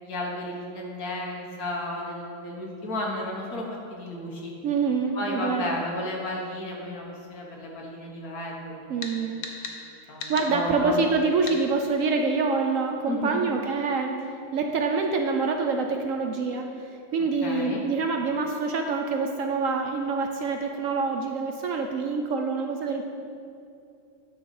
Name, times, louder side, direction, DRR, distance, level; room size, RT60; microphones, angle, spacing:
voice 1, 0.0-4.5 5.1-7.1 7.3-9.3 10.1-10.9 13.1-13.4 17.4-17.9, left 1 dB, 60° left, -2 dB, 1.8 m, -33 dB
voice 2, 4.6-5.8 8.9-9.4 10.3-14.3 14.5-23.0, right 4 dB, 65° right, 3 dB, 0.8 m, -26 dB
sound 1, 9.0-9.1 9.4-9.8 10.2-10.5 11.5-11.6, left 5 dB, 85° left, 1.5 m, -35 dB
10.5 x 4.0 x 6.4 m, 2.5 s
omnidirectional pair, 1.8 m